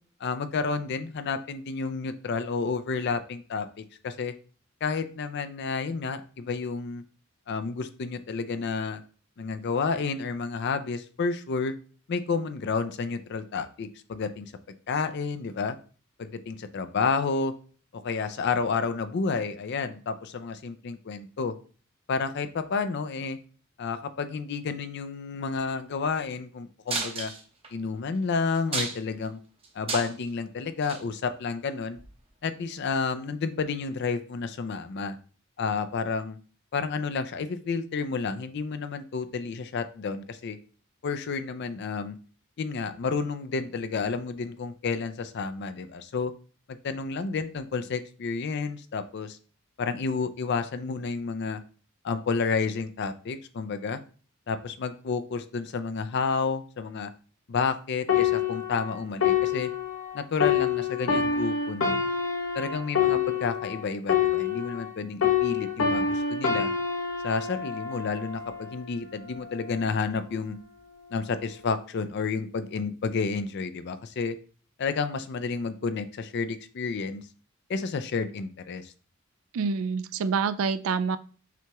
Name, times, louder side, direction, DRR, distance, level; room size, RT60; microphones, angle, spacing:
voice 1, 0.2-4.3 4.8-7.0 7.5-9.0 9.4-11.7 12.1-14.5 14.9-15.8 16.2-17.5 18.0-21.5 22.1-23.4 23.8-27.3 27.7-29.4 29.7-32.0 32.4-35.2 35.6-36.4 36.7-40.6 41.0-42.2 42.6-46.3 46.7-49.4 49.8-51.6 52.0-54.0 54.5-57.1 57.5-59.7 60.1-62.0 62.5-66.7 67.2-70.6 71.1-74.4 74.8-77.2 77.7-78.9, left 4 dB, 55° left, 10 dB, 0.4 m, -30 dB
sound 1, 26.9-27.7 28.1-28.2 28.5-29.2 29.6-30.3 30.8-31.0 32.0-32.1, right 4 dB, 30° right, 0.7 m, -32 dB
sound 2, 58.1-64.9 65.2-68.8 69.4-69.6, left 7 dB, 70° left, 0.9 m, -27 dB
voice 2, 79.5-81.2, right 5 dB, 75° right, 13 dB, 0.3 m, -27 dB
5.8 x 2.9 x 2.3 m, 0.40 s
head